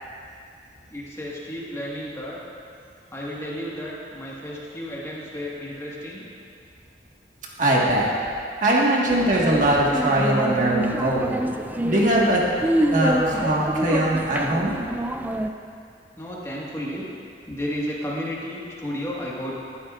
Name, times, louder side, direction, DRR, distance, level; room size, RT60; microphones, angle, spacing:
voice 1, 0.9-2.4 3.1-6.3 16.2-17.1 17.5-19.5, equal, 15° left, -5 dB, 1.6 m, -32 dB
voice 2, 7.6-8.1 8.6-11.3 11.8-12.5 12.9-14.7, right 1 dB, 45° right, -4 dB, 1.6 m, -21 dB
sound 1, 9.1-15.5, right 1 dB, 10° right, 0.3 m, -26 dB
12.5 x 11.5 x 2.5 m, 2.3 s
head